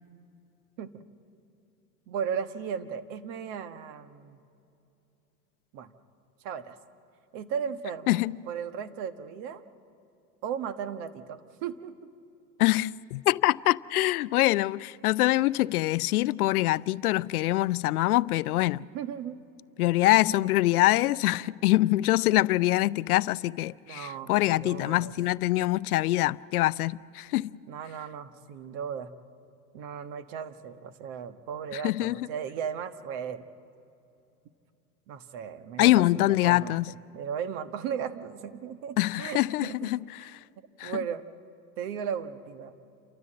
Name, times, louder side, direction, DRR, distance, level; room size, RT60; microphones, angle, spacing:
voice 1, 2.1-4.4 5.7-5.9 6.4-6.8 7.3-8.2 8.5-9.6 10.4-11.9 18.9-19.4 23.9-25.1 27.7-29.1 29.7-33.4 35.1-35.9 36.4-36.7 37.1-39.9 40.8-41.2 41.8-42.7, right 7 dB, 55° right, 1.4 m, -36 dB
voice 2, 8.1-8.4 12.6-18.8 19.8-27.5 31.7-32.3 35.8-36.9 39.0-40.4 40.8-41.0, left 17 dB, 80° left, 0.5 m, -24 dB
29.0 x 14.0 x 7.7 m
hypercardioid pair, 105°, 44 cm